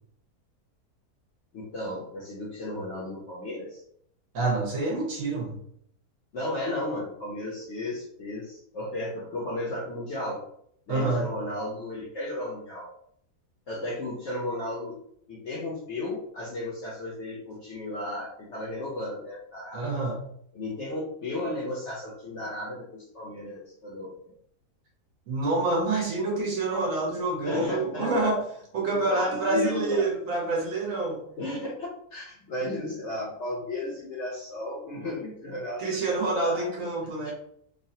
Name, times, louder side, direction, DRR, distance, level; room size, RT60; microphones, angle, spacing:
voice 1, 1.5-3.8 6.3-10.4 10.9-12.9 13.7-15.0 15.3-19.9 20.5-24.3 27.4-28.1 28.8-30.1 31.4-31.7 32.1-36.7 37.2-37.3, left 2 dB, 60° left, -3 dB, 0.8 m, -34 dB
voice 2, 4.3-5.6 10.9-11.3 19.7-20.2 25.3-28.4 28.7-31.2 35.8-37.3, right 3 dB, 60° right, -1 dB, 1.1 m, -27 dB
3.1 x 2.3 x 2.6 m, 0.68 s
omnidirectional pair, 1.7 m